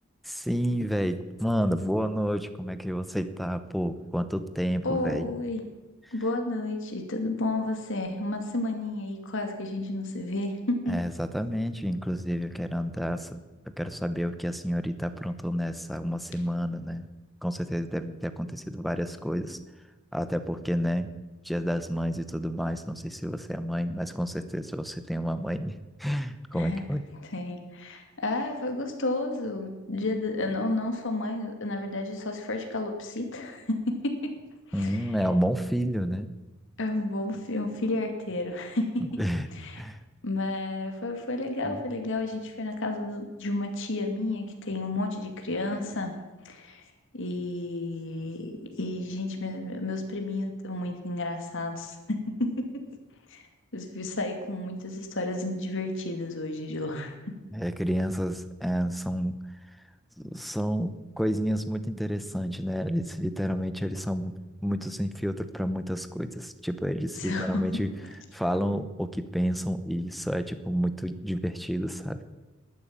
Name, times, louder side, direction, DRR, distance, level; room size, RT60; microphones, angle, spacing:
voice 1, 0.2-5.3 6.0-6.1 10.9-13.4 13.6-17.1 17.4-19.6 20.1-21.1 21.4-27.0 34.7-36.3 39.2-39.5 39.8-40.0 41.6-41.8 57.5-59.4 60.2-64.3 64.6-67.9 68.3-72.2, equal, ahead, 10 dB, 0.8 m, -30 dB
voice 2, 4.8-5.6 6.1-11.0 26.5-26.8 27.3-34.3 34.7-35.0 36.8-39.1 39.5-39.8 40.2-46.1 46.4-46.8 47.1-52.8 53.3-53.4 53.7-57.1 67.2-67.6, left 2 dB, 60° left, 4 dB, 2.3 m, -31 dB
12.0 x 9.7 x 8.7 m, 1.1 s
head